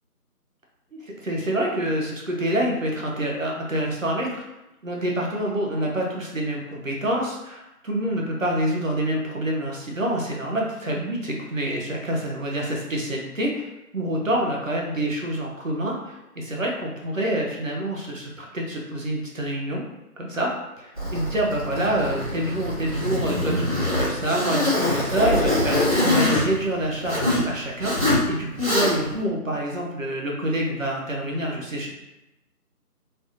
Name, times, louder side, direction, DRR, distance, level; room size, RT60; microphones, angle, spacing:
voice 1, 1.0-4.4 4.8-13.7 13.9-19.8 20.2-20.5 20.8-31.9, right 1 dB, 55° right, -1 dB, 0.7 m, -27 dB
Zipper (clothing), 21.0-27.5 27.8-28.2 28.6-29.2, left 1 dB, 30° right, 1.4 m, -24 dB
3.3 x 2.1 x 2.7 m, 0.94 s
figure-of-eight pair, 180°, 47 cm